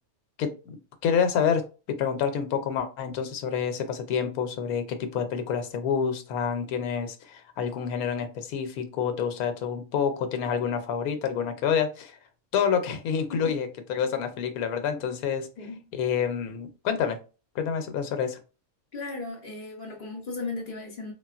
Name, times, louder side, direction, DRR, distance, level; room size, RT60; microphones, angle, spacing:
voice 1, 0.4-0.8 1.0-1.6 1.9-12.2 12.5-15.5 15.9-17.2 17.5-18.4, left 7 dB, 80° left, 1.1 m, -28 dB
voice 2, 15.6-15.9 18.9-21.1, left 3 dB, 50° left, 0.7 m, -36 dB
3.6 x 2.2 x 2.4 m
omnidirectional pair, 1.6 m